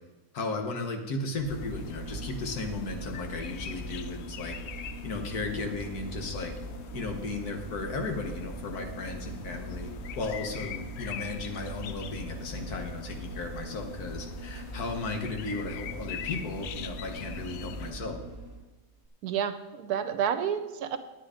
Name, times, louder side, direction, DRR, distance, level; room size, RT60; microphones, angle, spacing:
voice 1, 0.3-4.6 5.0-6.5 6.9-9.9 10.2-18.2, left 3 dB, 70° left, 4 dB, 1.8 m, -35 dB
sound 1, 1.3-18.7 19.0-19.1, right 2 dB, 10° right, 1.5 m, -41 dB
sound 2, 1.5-17.9, left 9 dB, 90° left, 0.5 m, -44 dB
voice 2, 19.2-21.0, right 8 dB, 75° right, 10 dB, 1.2 m, -30 dB
9.6 x 9.4 x 5.0 m, 1.1 s
omnidirectional pair, 1.7 m